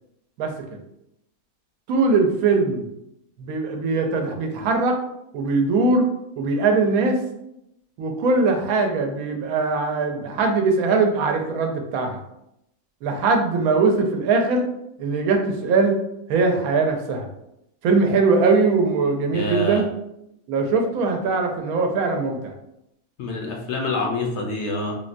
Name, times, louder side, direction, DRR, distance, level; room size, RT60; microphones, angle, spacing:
voice 1, 0.4-0.8 1.9-2.8 3.4-5.0 5.3-6.0 6.4-7.2 8.0-12.2 13.0-14.6 15.0-16.0 16.3-17.3 17.8-19.8 20.5-22.5, right 3 dB, 85° right, 3 dB, 1.0 m, -21 dB
voice 2, 19.3-19.8 23.2-25.0, left 2 dB, 65° left, 0 dB, 0.7 m, -26 dB
3.6 x 2.1 x 2.5 m, 0.81 s
omnidirectional pair, 1.5 m